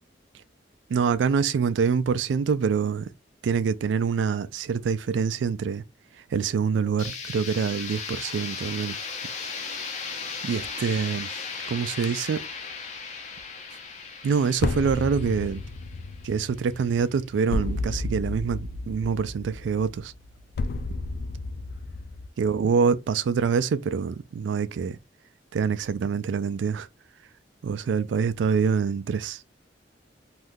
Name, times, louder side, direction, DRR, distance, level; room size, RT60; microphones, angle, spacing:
voice 1, 0.9-3.1 3.4-5.8 6.3-9.0 9.6-9.8 10.4-11.3 11.7-12.4 14.2-15.6 16.2-20.1 22.4-25.0 25.5-26.9 27.6-29.4, right 6 dB, 90° right, 0.3 m, -25 dB
sound 1, 7.0-16.8, left 5 dB, 40° left, 0.7 m, -37 dB
echo bangs, 12.0-12.3 14.6-22.3, left 2 dB, 60° left, 0.3 m, -33 dB
2.7 x 2.3 x 3.5 m
head